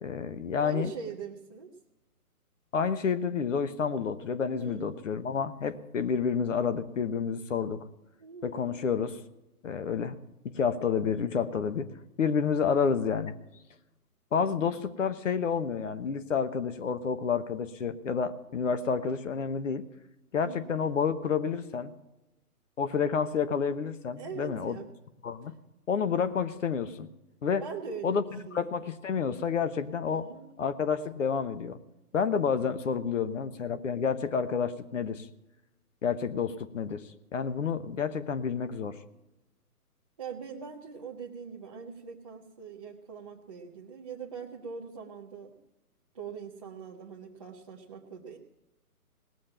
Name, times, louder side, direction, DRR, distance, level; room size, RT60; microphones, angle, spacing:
voice 1, 0.0-0.9 2.7-7.8 8.4-9.2 9.6-10.2 10.4-11.9 12.2-13.3 14.3-19.8 20.3-21.9 22.8-24.8 25.2-25.5 25.9-27.1 27.4-27.6 28.0-28.2 28.5-30.3 30.6-31.8 32.1-35.3 36.0-39.0, left 6 dB, 55° left, 12 dB, 1.0 m, -29 dB
voice 2, 0.6-1.7 4.5-4.9 8.2-8.8 14.3-14.8 20.4-20.8 24.2-24.9 27.6-28.2 28.5-28.8 30.1-30.5 40.2-45.6 46.1-48.4, right 6 dB, 20° right, -3 dB, 0.7 m, -42 dB
18.5 x 7.5 x 8.7 m, 0.97 s
hypercardioid pair, 160°, 46 cm